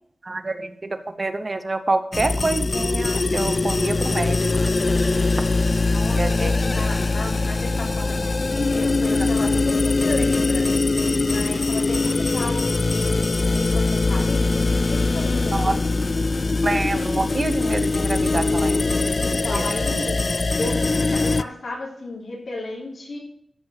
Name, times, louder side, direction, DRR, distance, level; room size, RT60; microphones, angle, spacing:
voice 1, 0.2-4.7 6.2-6.5 15.5-15.8 16.6-18.8 19.5-19.6, right 2 dB, 35° right, 9 dB, 0.8 m, -27 dB
sound 1, 2.1-21.4, left 3 dB, 40° left, 0.3 m, -22 dB
voice 2, 5.9-10.7 11.2-15.8 19.2-20.2 20.6-23.2, left 2 dB, 70° left, -3 dB, 3.4 m, -33 dB
13.5 x 5.2 x 5.8 m, 0.73 s
wide cardioid pair, 110°, 0 cm